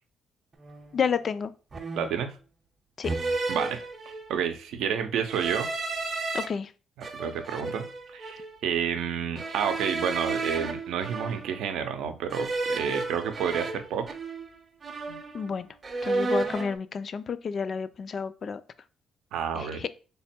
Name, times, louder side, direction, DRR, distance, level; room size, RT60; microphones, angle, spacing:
sound 1, 0.6-0.9 1.7-2.3 3.0-4.4 5.2-6.5 7.0-8.6 9.4-11.7 12.3-14.6 14.8-15.5 15.8-16.8, right 3 dB, 35° right, 0.7 m, -32 dB
voice 1, 0.9-1.5 3.0-3.2 6.3-6.7 15.3-15.7 16.0-18.6 19.6-19.9, left 6 dB, 50° left, 13 dB, 0.3 m, -30 dB
voice 2, 2.0-2.3 3.5-3.8 4.3-5.7 7.0-7.9 8.1-14.1 15.1-15.2 19.3-19.8, right 8 dB, 85° right, 7 dB, 0.5 m, -30 dB
3.3 x 2.2 x 4.3 m, 0.35 s
cardioid pair, 90°, 0 cm